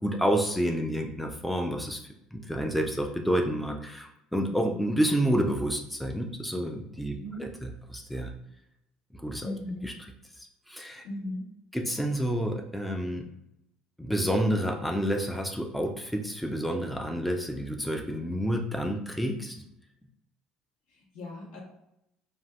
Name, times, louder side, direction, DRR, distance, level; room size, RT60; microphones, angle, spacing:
voice 1, 0.0-2.0 2.3-7.1 7.4-8.3 9.1-9.5 9.8-9.9 10.4-11.0 11.7-13.2 14.0-19.5, equal, ahead, 3 dB, 0.4 m, -29 dB
voice 2, 4.5-4.8 7.1-7.5 9.4-9.9 11.0-11.5 20.9-21.6, left 1 dB, 70° left, -1 dB, 0.9 m, -38 dB
2.6 x 2.3 x 3.2 m, 0.80 s
hypercardioid pair, 70°, 2 cm